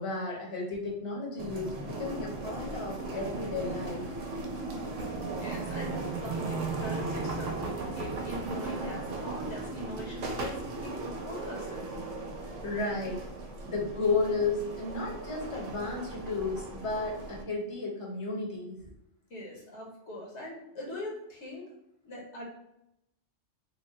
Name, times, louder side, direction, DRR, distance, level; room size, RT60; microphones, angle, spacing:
voice 1, 0.0-4.2 12.2-13.3 13.6-18.8, left 3 dB, 30° left, -2 dB, 0.7 m, -33 dB
sound 1, 1.4-17.4, right 3 dB, 90° right, 0.9 m, -37 dB
voice 2, 5.4-5.9 6.2-11.8 19.3-21.7 22.0-22.5, left 1 dB, 70° left, -3 dB, 1.1 m, -41 dB
3.1 x 2.1 x 3.6 m, 0.83 s
omnidirectional pair, 1.2 m